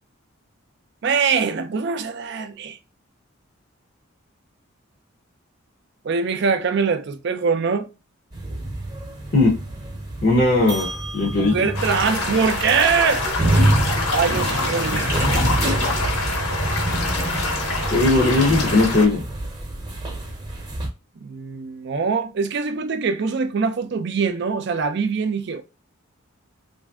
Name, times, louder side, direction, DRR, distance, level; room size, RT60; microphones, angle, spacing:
voice 1, 1.0-2.8 6.0-7.9 11.3-13.2 14.1-15.1 21.2-25.6, right 5 dB, 55° right, 0.4 m, -23 dB
sound 1, 8.3-20.9, right 1 dB, 20° right, 0.7 m, -26 dB
voice 2, 10.2-10.9 11.1-11.5 17.9-19.2, left 2 dB, 45° left, 0.6 m, -17 dB
sound 2, 11.7-19.1, left 2 dB, 80° left, 1.1 m, -26 dB
3.1 x 2.5 x 2.3 m
head